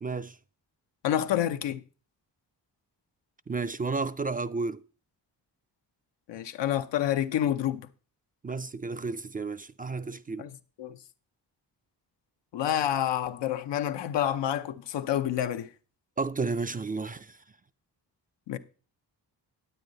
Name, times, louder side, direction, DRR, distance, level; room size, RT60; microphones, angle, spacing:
voice 1, 0.0-0.4 3.5-4.8 8.4-10.5 16.2-17.4, right 4 dB, 20° right, 0.3 m, -32 dB
voice 2, 1.0-1.8 6.3-7.8 10.4-10.5 10.8-11.0 12.5-15.7 18.5-18.6, left 11 dB, 90° left, 0.7 m, -28 dB
9.2 x 8.8 x 3.9 m
cardioid pair, 65°, 41 cm